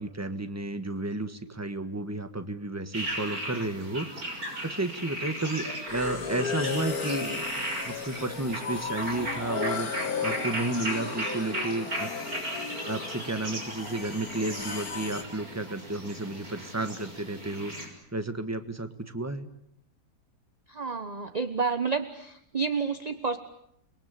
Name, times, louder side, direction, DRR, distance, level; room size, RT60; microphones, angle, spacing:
voice 1, 0.0-4.1 4.6-7.4 7.8-12.1 12.8-19.5, right 2 dB, 10° right, 9 dB, 1.5 m, -32 dB
sound 1, 2.9-17.9, right 1 dB, 60° right, 6.8 m, -36 dB
sound 2, 5.9-15.2, left 5 dB, 65° left, 2.3 m, -35 dB
voice 2, 20.7-23.4, right 5 dB, 25° right, 9 dB, 1.1 m, -30 dB
29.5 x 22.0 x 8.4 m, 0.76 s
omnidirectional pair, 1.8 m